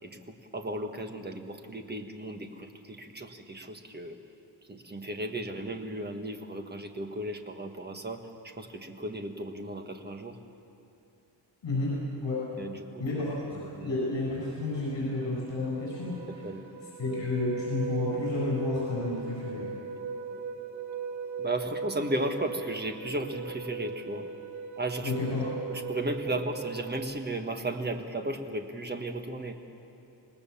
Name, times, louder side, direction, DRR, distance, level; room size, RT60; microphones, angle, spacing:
voice 1, 0.0-4.2 4.7-10.4 12.6-13.0 13.5-13.9 16.3-16.6 21.4-24.3 24.8-25.4 25.7-29.6, right 1 dB, 20° right, 5 dB, 1.4 m, -35 dB
voice 2, 11.6-12.4 13.0-16.3 17.0-19.7 25.0-25.4, left 2 dB, 70° left, -6 dB, 7.5 m, -31 dB
sound 1, 14.1-14.2 14.5-27.0, right 4 dB, 40° right, 2.0 m, -39 dB
26.5 x 19.5 x 7.1 m, 2.9 s
wide cardioid pair, 170°, 45 cm